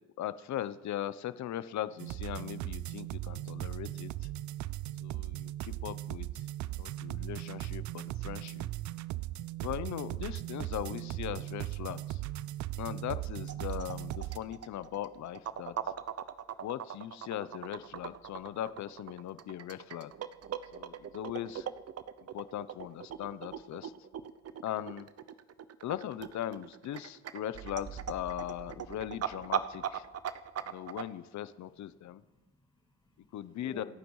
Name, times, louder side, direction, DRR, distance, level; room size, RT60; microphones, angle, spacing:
voice 1, 0.2-4.1 5.0-6.3 6.6-8.7 9.6-12.2 12.7-15.8 16.6-20.1 20.7-21.7 22.3-23.9 24.6-25.1 25.8-30.1 30.6-32.2 33.3-33.8, left 11 dB, 70° left, 15 dB, 0.8 m, -39 dB
sound 1, 2.0-14.4, right 15 dB, 75° right, 0.6 m, -38 dB
sound 2, 13.5-31.0, right 9 dB, 55° right, 0.9 m, -40 dB
voice 2, 31.7-33.9, left 2 dB, 15° left, -6 dB, 4.5 m, -54 dB
28.0 x 9.4 x 4.8 m, 1.0 s
cardioid pair, 90°, 30 cm